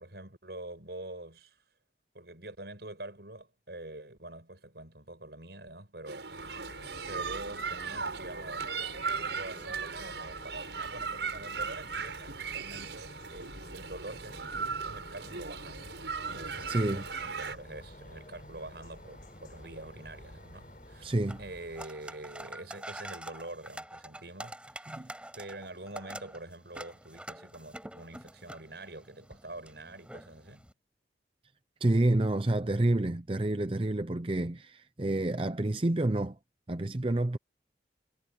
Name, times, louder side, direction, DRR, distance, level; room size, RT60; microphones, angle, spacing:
voice 1, 0.0-1.6 2.1-6.8 7.1-8.8 9.1-25.0 25.3-30.7, right 2 dB, 70° right, 5.5 m, -46 dB
sound 1, 6.1-17.6, right 5 dB, 90° right, 7.4 m, -37 dB
sound 2, 6.3-21.9, left 1 dB, 50° left, 5.8 m, -50 dB
sound 3, 16.2-30.7, right 1 dB, 5° right, 6.2 m, -48 dB
voice 2, 16.7-17.1 21.0-21.4 24.9-25.1 31.8-36.4 36.7-37.4, right 1 dB, 30° right, 0.7 m, -28 dB
head